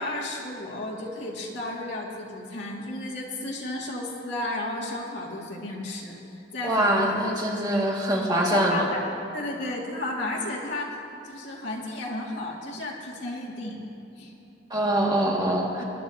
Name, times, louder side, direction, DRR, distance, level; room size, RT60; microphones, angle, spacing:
voice 1, 0.0-6.2 6.5-7.6 8.5-9.1 9.3-11.0 11.2-13.8 14.2-14.3 15.8-15.9, left 2 dB, 70° left, -3 dB, 2.3 m, -33 dB
voice 2, 6.6-8.9 14.7-15.8, right 1 dB, 25° right, -3 dB, 2.2 m, -24 dB
23.5 x 11.0 x 2.9 m, 2.9 s
head